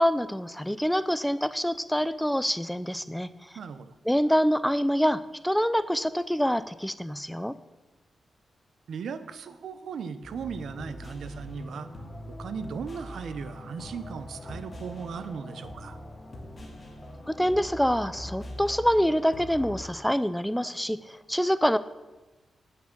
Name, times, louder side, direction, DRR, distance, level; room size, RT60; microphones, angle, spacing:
voice 1, 0.0-3.3 4.1-7.5 17.3-21.8, equal, 5° left, 15 dB, 0.4 m, -26 dB
voice 2, 3.5-3.9 8.9-11.9 12.3-16.0, right 6 dB, 75° right, 12 dB, 0.8 m, -37 dB
sound 1, 10.2-19.8, left 1 dB, 35° left, 2.0 m, -42 dB
9.6 x 9.2 x 6.0 m, 1.1 s
wide cardioid pair, 110°, 0 cm